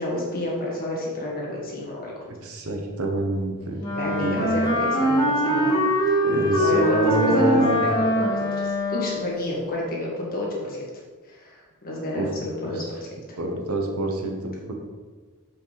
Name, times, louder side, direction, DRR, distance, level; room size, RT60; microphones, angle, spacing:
voice 1, 0.0-2.2 4.0-10.9 11.3-13.4, left 1 dB, 40° left, -3 dB, 1.9 m, -30 dB
voice 2, 2.3-3.8 4.2-4.5 6.2-7.8 12.1-12.3 12.8-12.9 13.4-14.7, right 1 dB, 75° right, 3 dB, 1.1 m, -26 dB
Wind instrument woodwind instrument, 3.8-9.3, equal, 20° left, 2.4 m, -23 dB
7.3 x 5.3 x 4.1 m, 1.4 s
head